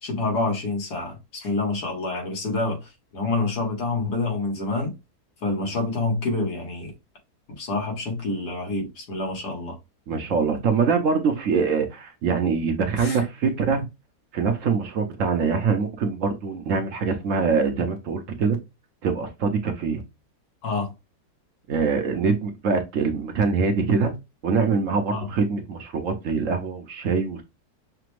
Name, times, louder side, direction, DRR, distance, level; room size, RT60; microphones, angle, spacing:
voice 1, 0.0-4.9 5.4-6.9 7.5-9.8 13.0-13.3 20.6-20.9 25.1-25.3, left 3 dB, 80° left, 2.0 m, -27 dB
voice 2, 10.1-13.9 14.3-18.6 19.0-20.0 21.7-24.1 24.4-27.4, right 5 dB, 60° right, 1.0 m, -24 dB
5.9 x 2.2 x 3.1 m
omnidirectional pair, 1.7 m